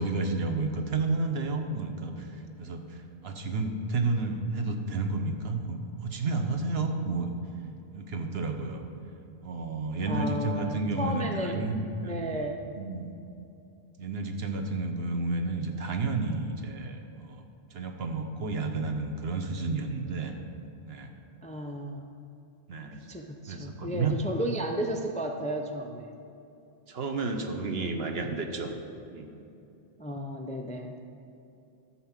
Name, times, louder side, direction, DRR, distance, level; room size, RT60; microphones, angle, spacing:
voice 1, 0.0-7.3 7.9-8.8 9.4-12.3 12.8-13.2 14.0-17.5 17.7-20.3 20.8-21.1 22.7-23.1 23.5-24.1 26.9-28.7 29.1-29.3, right 3 dB, 70° right, 4 dB, 1.1 m, -31 dB
voice 2, 10.1-11.7 12.0-12.6 21.4-22.2 23.0-26.1 30.0-30.9, equal, 10° left, 3 dB, 0.4 m, -33 dB
12.5 x 4.4 x 7.3 m, 2.8 s
omnidirectional pair, 1.1 m